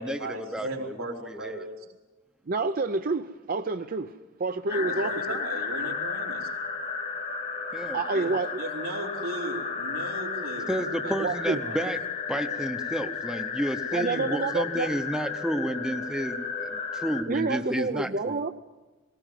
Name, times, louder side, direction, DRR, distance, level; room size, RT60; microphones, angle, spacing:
voice 1, 0.0-1.9 4.7-6.5 8.1-8.3 8.6-10.8 11.0-11.9, right 1 dB, 90° right, -1 dB, 3.7 m, -37 dB
voice 2, 0.5-1.6 7.7-8.0 10.7-12.0 12.3-18.4, equal, 5° right, 6 dB, 0.8 m, -31 dB
voice 3, 2.5-5.2 7.9-8.6 11.2-11.6 13.9-14.9 17.3-18.5, right 3 dB, 45° right, 8 dB, 0.6 m, -28 dB
sound 1, 4.7-17.2, left 5 dB, 40° left, 1.4 m, -33 dB
19.0 x 18.5 x 9.1 m, 1.2 s
head